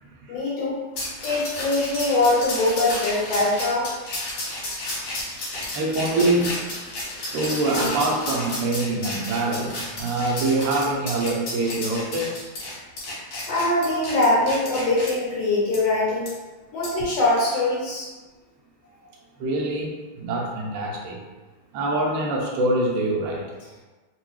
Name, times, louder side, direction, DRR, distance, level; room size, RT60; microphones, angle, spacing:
voice 1, 0.3-0.8 1.2-3.9 13.5-16.3 16.7-18.1, left 2 dB, 70° left, -5 dB, 1.6 m, -22 dB
sound 1, 1.0-15.1 15.7-15.8 16.3-16.4 16.8-17.0, left 1 dB, 55° left, 1.8 m, -32 dB
voice 2, 5.7-6.7 7.2-12.5 19.4-21.2 21.7-23.5, right 2 dB, 90° right, -1 dB, 2.1 m, -25 dB
4.7 x 2.2 x 3.0 m, 1.2 s
omnidirectional pair, 3.3 m